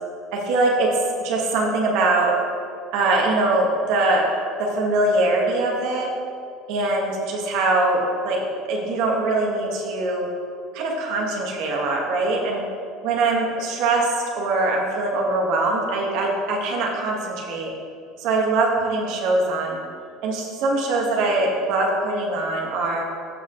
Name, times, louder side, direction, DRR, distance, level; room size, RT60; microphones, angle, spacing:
voice 1, 0.3-0.9 1.2-2.3 2.9-4.2 4.6-6.1 6.7-8.4 8.7-10.3 10.7-12.6 13.0-17.7 18.2-19.8 20.2-23.1, right 2 dB, 70° right, -1 dB, 1.7 m, -22 dB
15.0 x 5.7 x 3.2 m, 2.4 s
supercardioid pair, 95°, 0 cm